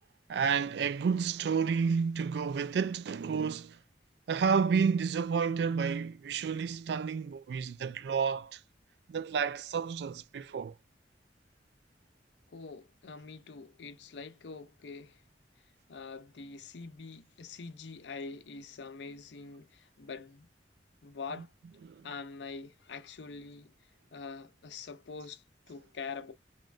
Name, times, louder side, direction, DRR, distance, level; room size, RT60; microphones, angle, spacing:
voice 1, 0.3-3.8 4.3-8.6 9.1-10.7 21.8-22.1, right 6 dB, 70° right, 0.3 m, -30 dB
voice 2, 12.5-15.2 15.9-20.5 21.0-21.5 22.0-23.7 24.1-26.3, left 4 dB, 85° left, 0.5 m, -44 dB
3.0 x 2.1 x 2.4 m
head